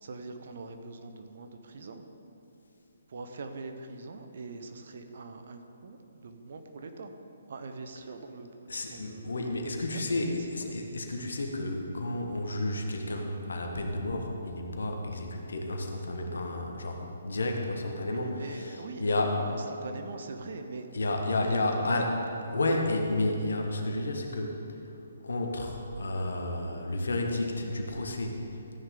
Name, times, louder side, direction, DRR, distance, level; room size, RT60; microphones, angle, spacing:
voice 1, 0.0-2.0 3.1-7.1 7.5-8.5 8.9-10.7 18.0-20.9 21.4-22.1, right 3 dB, 50° right, 6 dB, 0.9 m, -42 dB
voice 2, 8.7-19.4 20.9-22.1 22.4-24.6 25.2-28.4, left 2 dB, 65° left, 2 dB, 1.6 m, -31 dB
15.0 x 9.7 x 3.8 m, 2.8 s
figure-of-eight pair, 135°, 0 cm